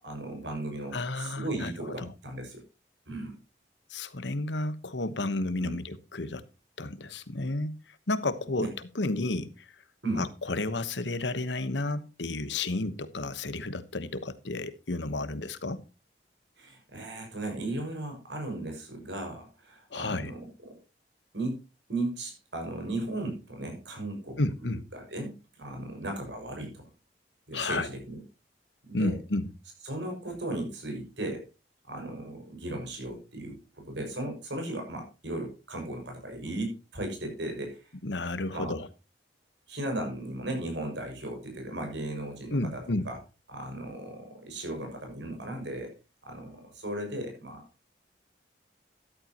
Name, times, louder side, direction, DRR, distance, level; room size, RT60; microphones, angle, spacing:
voice 1, 0.0-2.6 3.1-3.4 5.6-5.7 8.6-8.7 10.0-10.3 16.6-20.8 21.3-21.6 21.9-24.4 24.9-26.9 27.5-28.2 28.8-29.1 29.8-31.4 31.9-37.9 38.5-38.8 39.7-43.2 43.5-45.9 46.2-47.6, right 1 dB, 85° right, 6.2 m, -36 dB
voice 2, 0.9-2.1 3.9-6.4 6.8-9.7 10.2-15.8 19.9-20.3 24.4-24.8 27.5-27.9 28.9-29.5 38.0-38.9 42.5-43.1, left 2 dB, 85° left, 1.2 m, -32 dB
13.5 x 11.5 x 3.0 m
head